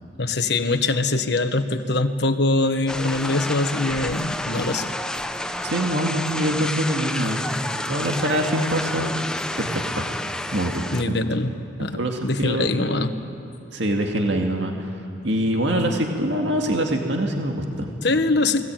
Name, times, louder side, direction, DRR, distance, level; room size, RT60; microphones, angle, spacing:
voice 1, 0.2-4.9 10.9-11.5 11.8-13.2 18.0-18.6, left 2 dB, 55° left, 8 dB, 1.4 m, -23 dB
sound 1, 2.9-11.0, left 1 dB, 5° left, 0.8 m, -29 dB
voice 2, 5.6-7.4 7.9-9.2 9.5-10.1 10.5-11.1 11.9-12.7 13.7-14.9 15.2-17.9, right 1 dB, 65° right, 2 dB, 2.2 m, -24 dB
29.5 x 21.0 x 9.2 m, 2.8 s
head